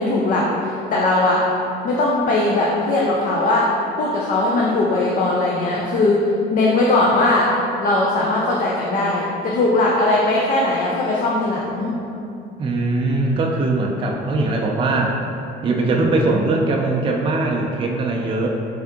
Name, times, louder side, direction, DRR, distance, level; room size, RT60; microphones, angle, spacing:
voice 1, 0.0-1.5 1.8-3.7 4.0-6.2 6.5-7.5 7.8-11.9, left 2 dB, 55° left, -4 dB, 0.5 m, -19 dB
voice 2, 12.6-15.2 15.6-18.5, right 2 dB, 30° right, 0 dB, 0.4 m, -20 dB
3.3 x 2.7 x 3.6 m, 2.7 s
cardioid pair, 110°, 17 cm